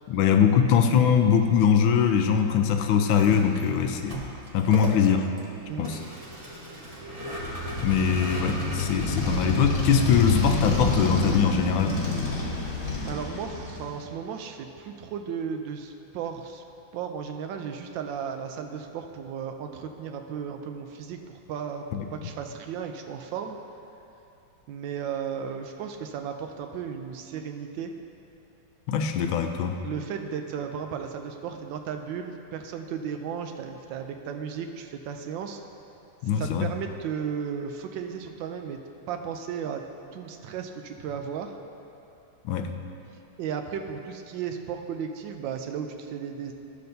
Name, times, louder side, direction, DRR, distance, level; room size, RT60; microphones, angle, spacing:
voice 1, 0.1-4.2 4.5-5.3 5.8-6.0 7.8-12.0 21.9-22.1 28.9-29.8 36.2-36.7 42.4-42.7, left 7 dB, 85° left, 5 dB, 1.4 m, -22 dB
Vehicle, 3.1-12.3, equal, 30° right, 0.7 m, -39 dB
Motorcycle, 7.3-14.0, left 3 dB, 50° left, 1.4 m, -28 dB
voice 2, 12.7-16.6 16.9-21.2 21.5-21.9 22.1-23.6 24.7-27.9 29.8-35.6 36.3-38.8 39.1-39.8 40.1-41.6 43.4-46.5, right 7 dB, 75° right, 5 dB, 1.2 m, -35 dB
13.0 x 6.6 x 2.6 m, 2.7 s
omnidirectional pair, 2.1 m